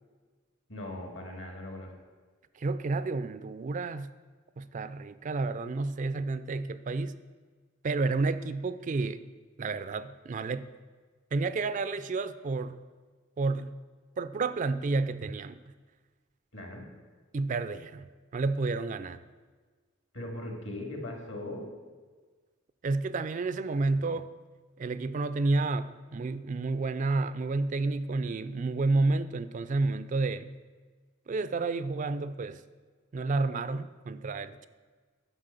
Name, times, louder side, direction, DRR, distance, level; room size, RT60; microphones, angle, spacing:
voice 1, 0.7-1.9 16.5-16.9 20.1-21.7, left 1 dB, 65° left, 2 dB, 2.1 m, -39 dB
voice 2, 2.6-4.1 4.6-7.2 7.8-9.2 9.6-10.7 11.3-12.8 13.4-13.8 14.2-15.6 17.3-19.2 22.8-24.3 24.8-30.6 31.3-32.6 33.1-34.7, right 3 dB, 40° right, 13 dB, 0.4 m, -30 dB
9.8 x 6.3 x 6.6 m, 1.4 s
head